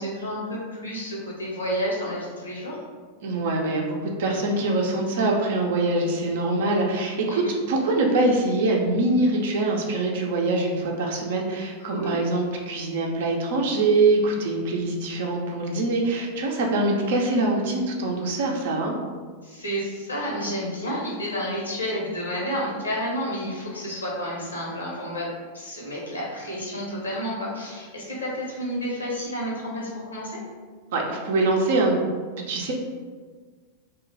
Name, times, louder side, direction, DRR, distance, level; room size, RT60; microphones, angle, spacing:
voice 1, 0.0-2.8 7.3-7.6 11.8-12.2 19.4-30.4, equal, 80° left, -4 dB, 1.0 m, -30 dB
voice 2, 3.2-19.0 30.9-32.1 32.5-32.7, right 2 dB, 55° right, 0 dB, 0.6 m, -24 dB
2.9 x 2.4 x 4.0 m, 1.5 s
figure-of-eight pair, 90°, 0 cm